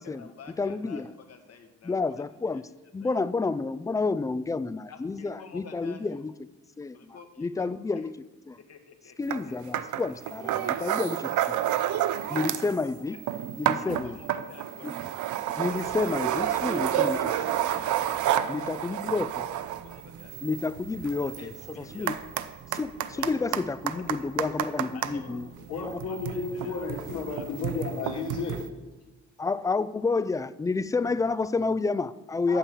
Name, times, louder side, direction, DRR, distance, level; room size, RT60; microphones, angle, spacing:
voice 1, 0.0-2.2 2.5-2.6 3.0-3.2 4.9-6.3 6.9-8.1 8.6-9.6 10.6-10.9 11.5-12.2 12.6-13.2 13.8-15.0 16.6-17.5 18.2-20.4 21.2-22.2 23.0-23.4 23.9-24.3 24.9-26.8 27.3-27.4 28.1-28.2 29.0-29.1, left 6 dB, 55° left, 1.6 m, -50 dB
voice 2, 0.6-1.1 1.8-2.6 2.9-6.3 6.8-8.1 8.5-8.6 9.2-11.6 12.3-13.2 13.6-14.2 14.8-14.9 15.6-17.2 18.5-19.5 20.4-22.1 22.7-25.5 25.9-26.0 29.4-32.6, left 4 dB, 10° left, 0.3 m, -30 dB
sound 1, 9.3-9.4 9.7-12.8 13.1-25.1 25.9-28.7, right 11 dB, 75° right, 0.6 m, -30 dB
sound 2, 15.6-27.5, right 6 dB, 50° right, 1.0 m, -50 dB
voice 3, 25.7-28.6 32.5-32.6, left 4 dB, 85° left, 2.7 m, -33 dB
8.5 x 6.8 x 7.3 m
cardioid pair, 90°, 30 cm